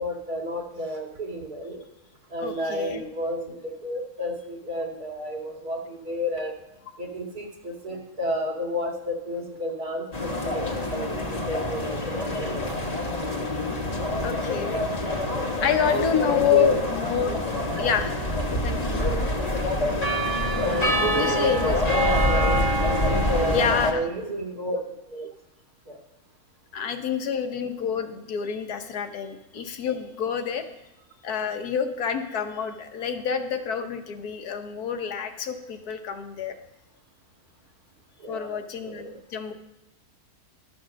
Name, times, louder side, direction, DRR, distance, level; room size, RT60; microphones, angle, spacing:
voice 1, 0.0-1.8 2.3-6.6 7.0-12.6 15.6-16.7 20.5-22.6 23.0-24.8 25.1-25.3 25.9-26.0 38.2-39.1, equal, 80° right, 0 dB, 2.5 m, -31 dB
voice 2, 2.4-3.0 14.2-14.8 15.6-17.4 17.8-18.1 18.5-19.1 21.1-21.8 23.5-24.0 26.7-30.6 31.2-36.5 38.3-39.5, left 7 dB, 80° left, 7 dB, 1.5 m, -28 dB
sound 1, 10.1-23.9, left 1 dB, 25° left, 1.4 m, -26 dB
12.0 x 6.2 x 6.3 m, 0.95 s
omnidirectional pair, 1.6 m